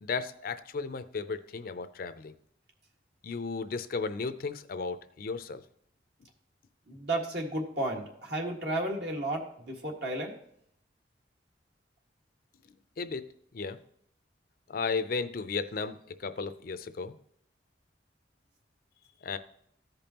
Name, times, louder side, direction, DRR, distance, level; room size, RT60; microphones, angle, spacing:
voice 1, 0.0-2.3 3.2-5.6 13.0-13.3 13.5-13.8 14.7-17.2 19.2-19.4, left 4 dB, 55° left, 11 dB, 0.5 m, -34 dB
voice 2, 6.9-10.4, right 1 dB, 65° right, 0 dB, 1.7 m, -33 dB
14.5 x 5.3 x 2.9 m, 0.69 s
head